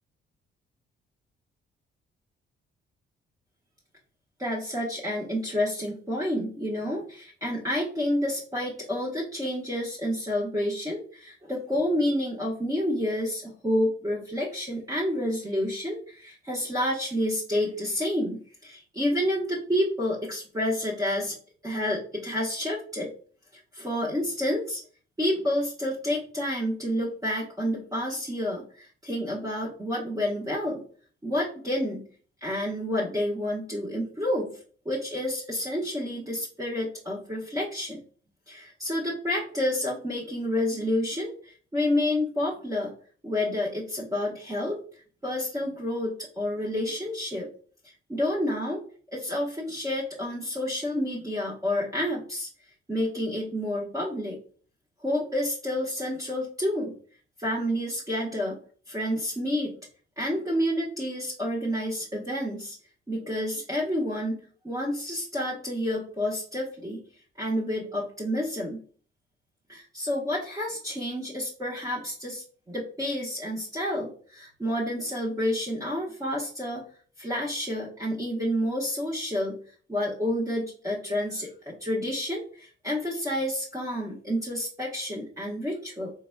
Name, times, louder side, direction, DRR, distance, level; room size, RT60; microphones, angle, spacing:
voice 1, 4.4-21.3 21.6-23.1 23.7-24.8 25.2-30.8 31.2-32.0 32.4-34.5 34.8-38.0 38.5-42.9 43.2-44.8 45.2-47.5 48.1-48.8 49.1-52.5 52.9-54.4 55.0-56.9 57.4-58.6 58.9-59.8 60.2-62.8 63.1-64.4 64.6-67.0 67.4-68.8 69.7-76.8 77.2-79.6 79.9-86.1, left 1 dB, 15° right, -5 dB, 1.1 m, -29 dB
3.9 x 3.5 x 2.2 m, 0.44 s
cardioid pair, 90°, 20 cm